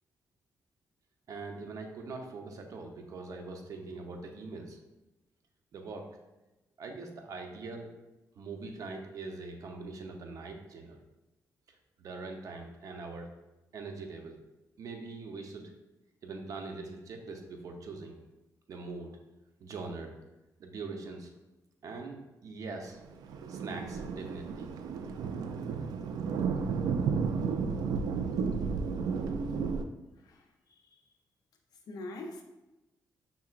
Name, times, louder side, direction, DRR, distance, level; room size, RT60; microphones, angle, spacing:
voice 1, 1.3-4.8 5.7-6.1 6.8-7.9 8.3-11.0 11.7-13.3 13.7-14.4 14.8-15.7 16.2-18.2 18.7-19.1 19.6-20.1 20.6-21.3 21.8-23.0 23.5-25.0, right 3 dB, 60° right, 3 dB, 0.7 m, -42 dB
Thunder, 23.0-29.9, right 5 dB, 90° right, 0.3 m, -32 dB
voice 2, 30.2-31.0 31.9-32.4, left 2 dB, 75° left, 3 dB, 0.6 m, -44 dB
5.6 x 3.8 x 2.4 m, 1.0 s
cardioid pair, 110°, 6 cm